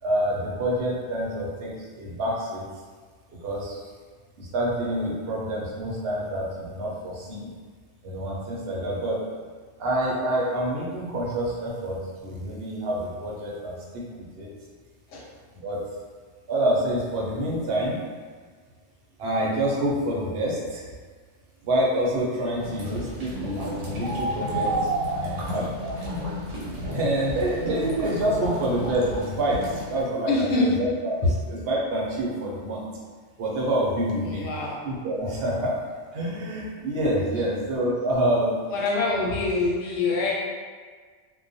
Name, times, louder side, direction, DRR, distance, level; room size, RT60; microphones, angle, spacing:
voice 1, 0.0-2.6 3.4-3.8 4.4-7.5 8.0-9.2 9.8-14.5 15.5-15.8 16.5-18.0 19.2-20.8 21.6-24.7 25.0-25.7 26.9-31.1 31.5-32.8 33.4-34.5 34.8-35.8 36.1-38.6 40.1-40.3, right 1 dB, 60° right, -4 dB, 0.7 m, -27 dB
sound 1, 22.6-30.0, right 1 dB, 90° right, 1.0 m, -31 dB
voice 2, 30.3-30.7 31.2-31.3 34.2-34.8 37.1-37.4 38.7-40.3, left 3 dB, 90° left, -3 dB, 0.9 m, -25 dB
2.3 x 2.1 x 2.6 m, 1.5 s
omnidirectional pair, 1.2 m